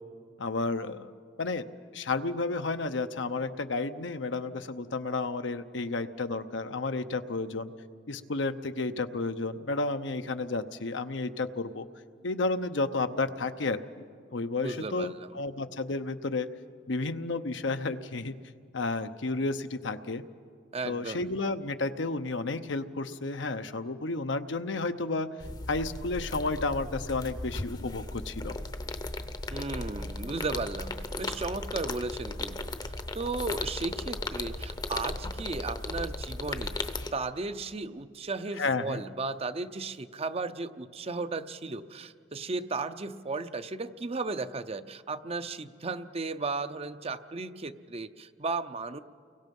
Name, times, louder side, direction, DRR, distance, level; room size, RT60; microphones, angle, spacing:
voice 1, 0.4-1.1 1.4-1.7 1.9-7.7 8.1-11.9 12.2-13.8 14.3-16.5 16.9-18.4 18.7-20.2 20.8-25.3 25.7-28.5 38.6-39.0, left 3 dB, 70° left, 9 dB, 0.9 m, -31 dB
voice 2, 14.6-15.3 20.7-21.3 29.5-49.0, right 3 dB, 30° right, 11 dB, 0.7 m, -35 dB
sound 1, 25.4-37.1, left 2 dB, 20° left, 0.8 m, -36 dB
30.0 x 23.0 x 5.4 m, 2.2 s
head